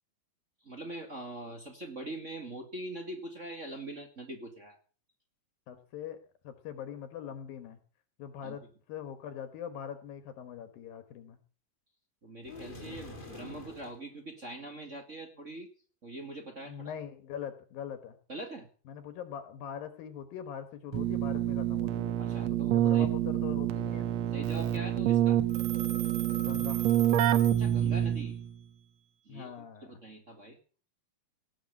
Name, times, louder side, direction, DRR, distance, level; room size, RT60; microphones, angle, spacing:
voice 1, 0.6-4.8 8.4-8.6 12.2-15.7 16.0-16.9 18.3-18.7 22.2-23.1 24.3-25.4 27.5-28.4 29.2-29.5 29.8-30.6, right 1 dB, 30° right, 3 dB, 1.5 m, -43 dB
voice 2, 5.7-6.2 6.4-7.8 8.2-8.6 8.9-11.4 16.6-18.2 18.9-22.1 22.5-24.1 26.4-26.9 29.3-30.0, left 8 dB, 75° left, 9 dB, 3.0 m, -42 dB
sound 1, 12.4-14.0, left 2 dB, 20° left, 1.7 m, -45 dB
Keyboard (musical), 20.9-28.5, right 11 dB, 80° right, 1.5 m, -27 dB
Telephone, 25.5-28.2, right 9 dB, 55° right, 2.2 m, -42 dB
17.5 x 7.3 x 8.4 m, 0.40 s
omnidirectional pair, 4.2 m